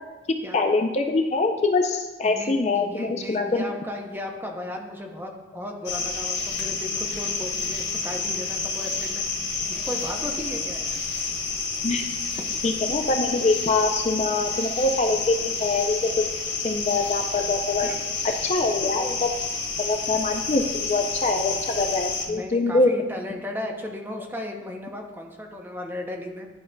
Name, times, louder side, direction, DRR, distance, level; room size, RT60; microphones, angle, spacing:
voice 1, 0.5-3.7 11.8-12.1 12.6-16.1 16.6-17.9 18.4-19.3 19.8-22.9, left 3 dB, 35° left, 4 dB, 0.4 m, -24 dB
voice 2, 2.2-9.2 9.7-11.0 12.3-12.6 17.8-18.1 22.3-26.5, left 1 dB, 10° right, 1 dB, 0.6 m, -35 dB
sound 1, 5.8-22.3, left 4 dB, 65° left, 1.2 m, -29 dB
10.5 x 5.2 x 2.2 m, 1.2 s
head